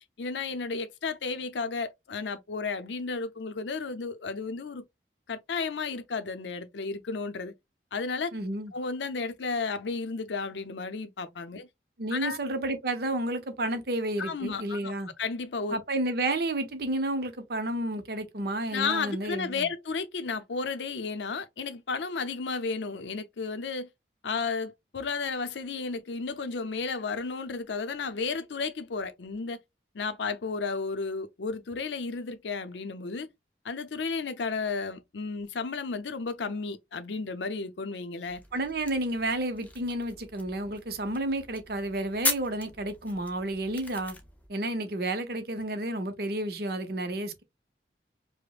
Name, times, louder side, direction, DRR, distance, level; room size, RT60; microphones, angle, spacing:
voice 1, 0.2-4.8 5.3-7.5 7.9-8.3 8.7-11.7 12.1-12.4 14.2-14.9 15.2-15.8 18.7-23.9 24.2-29.6 29.9-33.3 33.6-38.4, left 4 dB, 80° left, 0.6 m, -33 dB
voice 2, 8.3-8.7 12.0-15.1 15.7-19.7 38.5-44.2 44.5-47.4, right 1 dB, 55° right, 0.7 m, -31 dB
sound 1, 38.2-44.5, left 3 dB, 10° left, 0.5 m, -38 dB
5.0 x 2.1 x 2.4 m
head